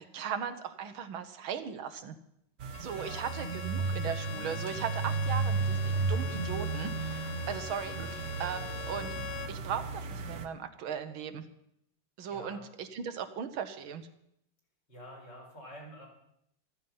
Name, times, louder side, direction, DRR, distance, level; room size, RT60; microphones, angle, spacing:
voice 1, 0.0-2.2 2.8-9.1 9.5-11.5 12.2-14.1, right 7 dB, 75° right, 10 dB, 1.8 m, -38 dB
sound 1, 2.6-10.5, right 4 dB, 45° right, 1.0 m, -34 dB
Bowed string instrument, 2.7-9.6, left 9 dB, 85° left, 1.7 m, -43 dB
voice 2, 2.9-3.3 12.3-12.6 14.9-16.1, equal, 55° left, -2 dB, 5.2 m, -48 dB
14.0 x 14.0 x 5.6 m, 0.75 s
omnidirectional pair, 2.3 m